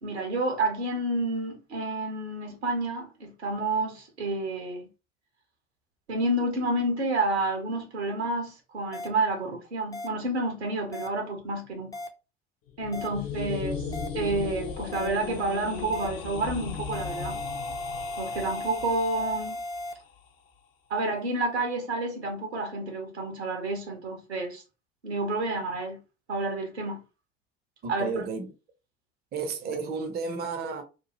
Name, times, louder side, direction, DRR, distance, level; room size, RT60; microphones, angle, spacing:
voice 1, 0.0-4.9 6.1-12.0 12.8-13.8 14.1-17.4 18.2-19.6 20.9-24.6 25.0-26.0 26.3-27.0 27.9-28.2, right 2 dB, 80° right, 1.0 m, -29 dB
sound 1, 8.9-9.1 9.9-10.1 10.9-11.1 11.9-12.1 12.9-13.1 13.9-14.1 14.9-15.1 15.9-16.1 16.9-19.9, left 2 dB, 10° left, 0.5 m, -36 dB
sound 2, 12.7-19.7, left 6 dB, 45° left, 0.7 m, -36 dB
voice 2, 27.8-28.5 29.3-30.8, right 4 dB, 30° right, 0.6 m, -32 dB
2.8 x 2.2 x 2.9 m
figure-of-eight pair, 65°, 32 cm